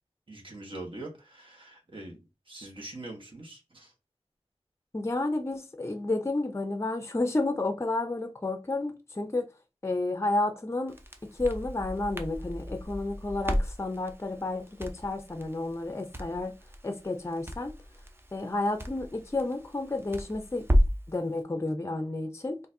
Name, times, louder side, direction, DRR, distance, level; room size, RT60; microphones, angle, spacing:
voice 1, 0.3-2.2 2.5-3.9, right 2 dB, 50° right, 1.3 m, -43 dB
voice 2, 4.9-9.5 9.8-10.9 11.4-16.5 16.8-17.7 18.3-20.6 21.1-22.6, left 2 dB, 25° left, 0.5 m, -31 dB
Crackle, 10.9-21.1, equal, 20° right, 0.5 m, -33 dB
3.9 x 2.5 x 2.7 m
wide cardioid pair, 55°, 11 cm